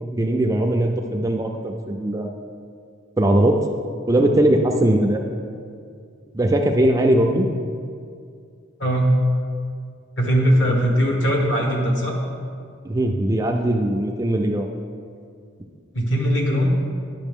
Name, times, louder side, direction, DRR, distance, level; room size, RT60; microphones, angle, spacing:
voice 1, 0.0-2.4 3.2-3.6 4.1-5.2 6.3-7.5 10.7-10.8 12.8-14.7, right 1 dB, 15° right, 3 dB, 0.3 m, -20 dB
voice 2, 8.8-9.1 10.2-12.1 15.9-16.7, equal, 60° left, -1 dB, 1.4 m, -20 dB
10.0 x 5.8 x 3.6 m, 2.3 s
head